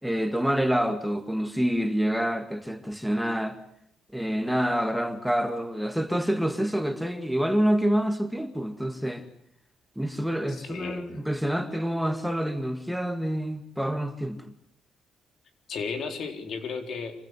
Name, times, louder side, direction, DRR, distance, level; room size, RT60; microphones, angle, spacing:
voice 1, 0.0-3.6 4.1-9.3 10.0-14.5, equal, ahead, 7 dB, 2.1 m, -27 dB
voice 2, 10.6-11.2 15.7-17.1, left 5 dB, 65° left, 6 dB, 4.0 m, -34 dB
26.0 x 16.0 x 9.8 m, 0.73 s
cardioid pair, 90°, 0 cm